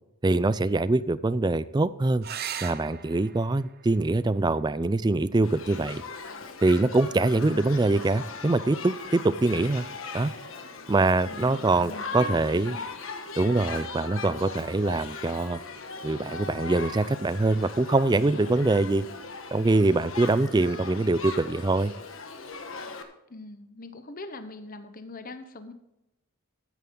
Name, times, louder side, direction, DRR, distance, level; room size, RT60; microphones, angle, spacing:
voice 1, 0.2-2.3 2.6-6.0 6.6-9.9 10.1-10.3 10.9-12.8 13.4-15.6 16.0-19.1 19.5-21.9, right 2 dB, 20° right, 16 dB, 0.4 m, -24 dB
sound 1, 2.2-7.2 9.1-9.8 13.2-13.3 13.6-13.7, right 8 dB, 45° right, 0.9 m, -42 dB
Shout / Human group actions, 5.4-23.0, left 3 dB, 70° left, 1.4 m, -39 dB
voice 2, 11.3-12.9 23.3-25.7, left 2 dB, 40° left, 9 dB, 1.0 m, -42 dB
14.0 x 9.3 x 3.9 m, 0.89 s
head